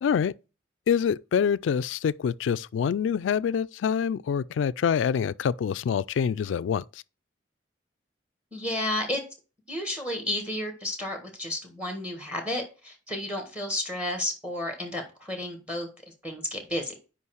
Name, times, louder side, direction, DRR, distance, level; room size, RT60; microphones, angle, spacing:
voice 1, 0.0-0.3 0.9-7.0, left 7 dB, 85° left, 0.3 m, -26 dB
voice 2, 8.5-9.2 9.7-15.9 16.2-16.9, left 1 dB, 5° right, 1.6 m, -32 dB
5.5 x 5.1 x 6.3 m
head